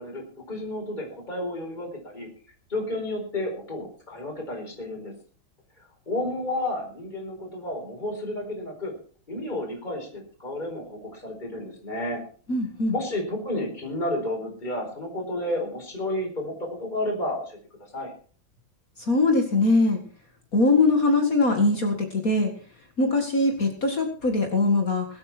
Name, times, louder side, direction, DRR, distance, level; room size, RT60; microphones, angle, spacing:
voice 1, 0.0-2.3 2.7-5.1 6.1-8.9 9.3-12.2 12.9-17.6 17.9-18.1, left 1 dB, 20° left, 0 dB, 4.8 m, -31 dB
voice 2, 12.5-12.9 19.0-20.0 20.5-22.5 23.0-25.1, left 2 dB, 45° left, 4 dB, 2.3 m, -22 dB
23.0 x 8.7 x 4.4 m, 0.43 s
omnidirectional pair, 2.2 m